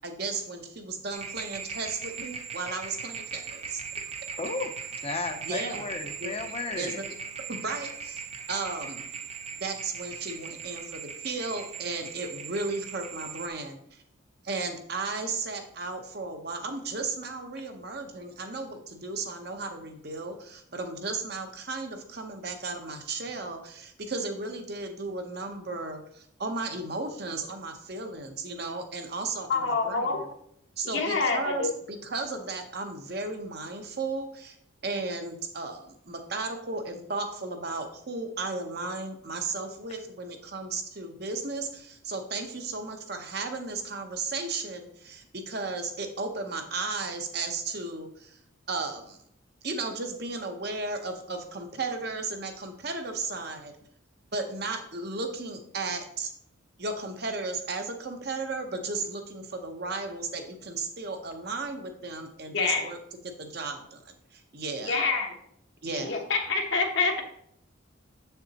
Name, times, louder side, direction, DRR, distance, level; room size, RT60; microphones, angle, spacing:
voice 1, 0.0-3.8 5.4-5.8 6.2-6.3 6.8-7.0 7.5-8.2 8.5-9.0 9.6-13.8 14.4-30.3 30.8-34.6 34.8-48.4 48.7-49.2 49.6-53.7 54.3-56.3 56.8-63.0 63.2-64.0 64.3-65.0 65.8-66.2, right 3 dB, 50° right, 5 dB, 0.8 m, -35 dB
sound 1, 1.1-13.5, right 6 dB, 30° right, 0.5 m, -39 dB
voice 2, 4.4-4.7 5.0-7.0, left 3 dB, 30° left, 7 dB, 0.6 m, -34 dB
voice 3, 29.5-30.2 30.9-31.6 62.5-62.8 64.8-65.3 66.0-67.2, left 4 dB, 65° left, 2 dB, 1.0 m, -26 dB
7.1 x 6.8 x 2.9 m, 0.71 s
head